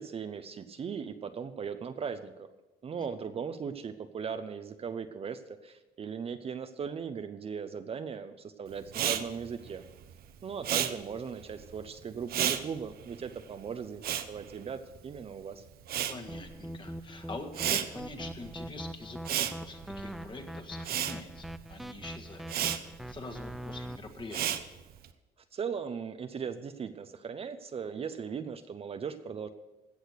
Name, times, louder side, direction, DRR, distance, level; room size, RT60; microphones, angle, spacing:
voice 1, 0.0-2.5 2.8-9.8 10.4-15.6 25.5-29.5, right 6 dB, 35° right, 9 dB, 0.7 m, -38 dB
Respiratory sounds, 8.9-15.3 15.6-25.1, right 10 dB, 65° right, 0.9 m, -34 dB
voice 2, 16.1-22.5 22.8-24.6, left 3 dB, 30° left, 6 dB, 1.6 m, -45 dB
sound 1, 16.3-24.0, equal, ahead, 0.4 m, -42 dB
16.5 x 6.4 x 6.5 m, 1.1 s
cardioid pair, 110°, 17 cm